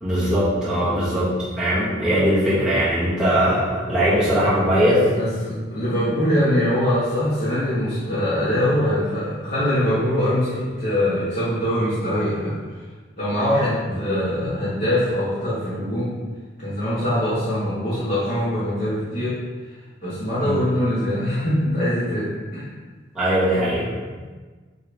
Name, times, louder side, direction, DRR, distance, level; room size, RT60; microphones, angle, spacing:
voice 1, 0.0-5.0 13.9-14.0 14.4-14.5 20.4-20.6 23.2-24.0, equal, 5° right, -11 dB, 1.6 m, -20 dB
voice 2, 0.7-1.2 5.1-12.6 13.2-16.2 16.6-19.4 20.0-22.7, equal, 40° left, -12 dB, 1.7 m, -23 dB
8.1 x 3.6 x 3.5 m, 1.4 s
head